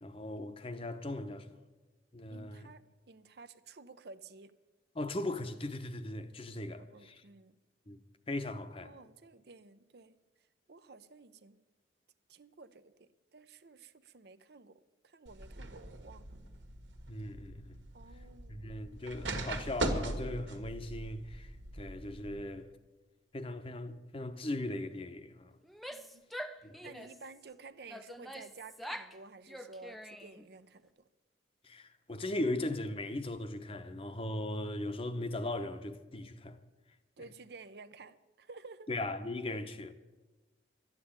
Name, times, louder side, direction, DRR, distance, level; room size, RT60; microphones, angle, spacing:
voice 1, 0.0-1.5 2.1-2.7 4.9-7.2 7.9-8.0 8.3-8.9 17.1-17.8 18.5-22.7 23.3-25.5 26.6-26.8 31.6-36.6 38.9-39.9, left 1 dB, 30° left, 0.8 m, -38 dB
voice 2, 2.3-4.5 6.8-7.5 8.8-10.2 10.7-11.6 12.3-16.3 17.9-19.1 25.9-26.2 26.5-31.0 37.2-38.9, right 4 dB, 60° right, 0.6 m, -53 dB
sound 1, 15.3-22.4, right 2 dB, 85° right, 1.7 m, -40 dB
Female speech woman speaking / Yell, 25.6-27.3 27.9-29.2 29.5-30.5, equal, ahead, 0.5 m, -45 dB
12.5 x 9.8 x 8.7 m
head